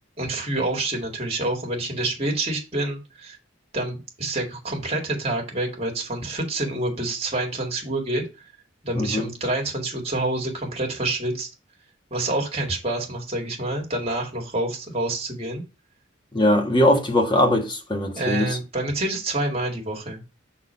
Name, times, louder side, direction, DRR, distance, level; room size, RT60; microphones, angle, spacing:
voice 1, 0.2-3.4 3.7-8.2 8.8-11.5 12.1-15.6 18.1-20.2, right 2 dB, 30° right, 2.1 m, -27 dB
voice 2, 8.9-9.3 16.3-18.5, left 1 dB, 20° left, 1.3 m, -20 dB
6.1 x 4.2 x 5.6 m
head